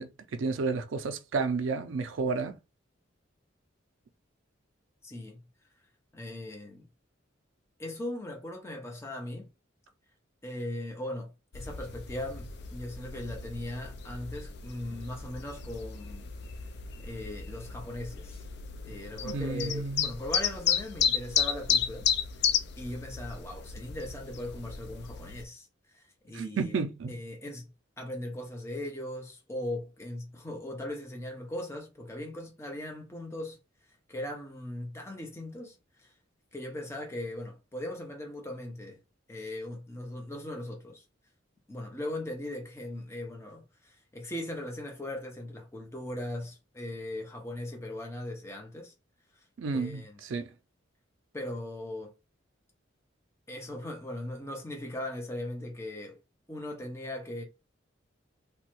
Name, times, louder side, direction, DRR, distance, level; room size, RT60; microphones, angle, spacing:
voice 1, 0.0-2.6 19.2-20.1 26.3-27.2 49.6-50.5, right 4 dB, 75° right, 0.4 m, -31 dB
voice 2, 5.0-5.4 6.1-6.9 7.8-9.5 10.4-16.3 17.0-18.4 18.8-22.1 22.5-25.7 25.9-26.8 27.1-27.7 28.0-33.6 34.1-36.1 36.5-39.0 39.3-41.0 41.7-48.9 49.7-50.2 51.3-52.1 53.5-56.2 56.5-57.4, left 1 dB, 15° left, 0.6 m, -39 dB
sound 1, 11.5-25.4, left 7 dB, 60° left, 0.4 m, -33 dB
3.0 x 2.2 x 2.9 m
head